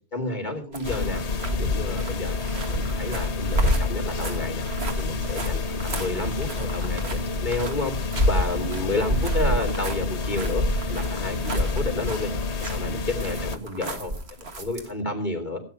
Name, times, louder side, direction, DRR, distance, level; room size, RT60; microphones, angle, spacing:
voice 1, 0.1-1.2 1.5-2.4 2.7-7.9 8.3-12.3 12.6-15.6, left 2 dB, 45° left, 1 dB, 3.2 m, -31 dB
sound 1, 0.7-14.9, equal, 70° right, 2.1 m, -29 dB
sound 2, 0.8-13.6, left 4 dB, 85° left, 1.4 m, -29 dB
16.5 x 9.0 x 5.7 m, 0.41 s
omnidirectional pair, 1.1 m